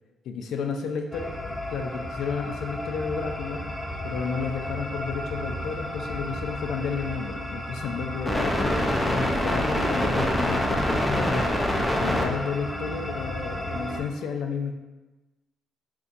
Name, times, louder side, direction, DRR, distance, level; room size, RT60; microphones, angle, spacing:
voice 1, 0.3-3.7 4.0-11.5 12.0-14.7, left 5 dB, 75° left, 4 dB, 0.3 m, -32 dB
sound 1, 1.1-14.0, left 1 dB, 5° left, 0.4 m, -28 dB
2.6 x 2.3 x 3.8 m, 1.1 s
cardioid pair, 90°, 0 cm